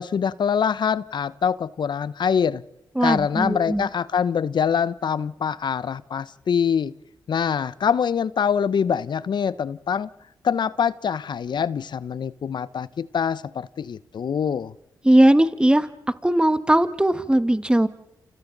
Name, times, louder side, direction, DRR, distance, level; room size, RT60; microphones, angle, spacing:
voice 1, 0.0-2.6 3.0-6.9 7.3-10.1 10.4-14.7, left 7 dB, 60° left, 18 dB, 0.8 m, -24 dB
voice 2, 2.9-3.9 15.0-15.9 16.2-17.9, right 1 dB, 10° right, 11 dB, 1.5 m, -18 dB
29.0 x 28.5 x 4.0 m, 0.94 s
supercardioid pair, 40°, 9 cm